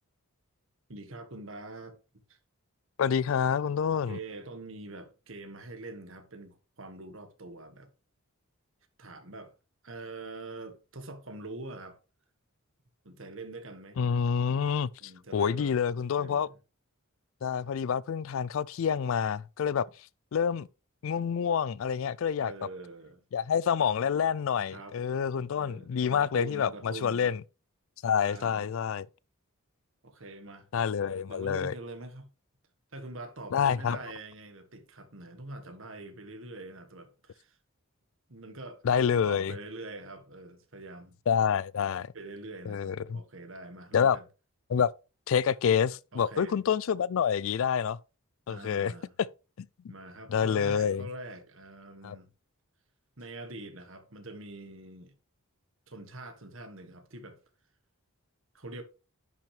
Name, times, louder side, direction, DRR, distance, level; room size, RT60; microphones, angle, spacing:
voice 1, 0.9-2.0 2.3-2.4 3.9-7.9 9.0-9.5 9.8-12.0 13.0-14.0 15.0-15.7 16.2-16.5 22.4-23.2 24.7-25.0 25.6-27.3 28.1-28.7 30.0-30.7 31.3-32.3 32.9-37.6 38.3-41.2 42.1-44.2 46.1-46.6 48.5-49.2 49.9-52.3 53.2-55.1 55.9-57.4 58.5-58.8, right 2 dB, 60° right, 1.5 m, -44 dB
voice 2, 3.0-4.2 14.0-14.9 15.3-16.5 17.4-19.9 20.3-20.7 21.0-22.5 23.3-27.4 28.0-29.1 30.7-31.7 33.5-34.0 38.8-39.5 41.3-42.1 42.7-43.2 43.9-44.2 44.7-44.9 45.3-48.0 48.5-48.9 49.6-49.7 50.3-51.0 52.0-52.2, left 7 dB, 65° left, 0.3 m, -27 dB
10.5 x 6.0 x 3.3 m
head